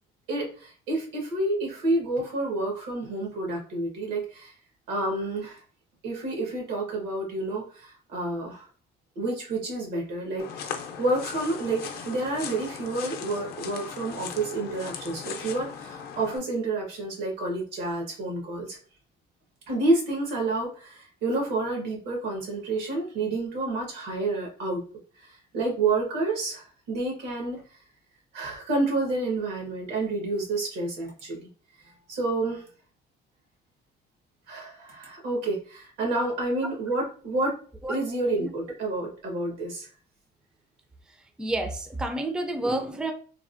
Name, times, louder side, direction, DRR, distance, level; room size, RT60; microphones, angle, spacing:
voice 1, 0.3-4.5 4.9-5.6 6.0-8.6 9.1-18.8 19.7-24.8 25.2-27.6 28.3-31.5 32.1-32.6 34.5-37.6 37.9-39.9, right 2 dB, 85° right, 0 dB, 1.3 m, -29 dB
sound 1, 10.4-16.4, left 7 dB, 65° left, 0.5 m, -38 dB
voice 2, 41.4-43.1, right 1 dB, 5° right, 6 dB, 0.3 m, -29 dB
3.3 x 2.1 x 2.5 m, 0.41 s
cardioid pair, 110°, 17 cm